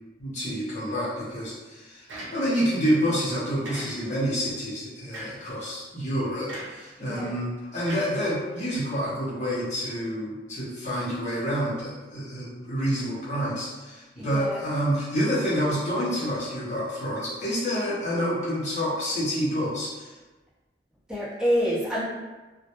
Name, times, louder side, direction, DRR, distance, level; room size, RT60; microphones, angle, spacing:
voice 1, 0.2-2.1 2.3-20.1, equal, 40° left, -8 dB, 0.7 m, -28 dB
sound 1, 2.1-2.7 3.6-4.3 5.1-5.5 6.5-6.9 7.9-8.8, right 1 dB, 85° right, 0.6 m, -40 dB
voice 2, 7.0-7.3 14.2-14.6 21.1-22.0, equal, 5° right, -12 dB, 0.7 m, -27 dB
2.1 x 2.1 x 2.8 m, 1.2 s
head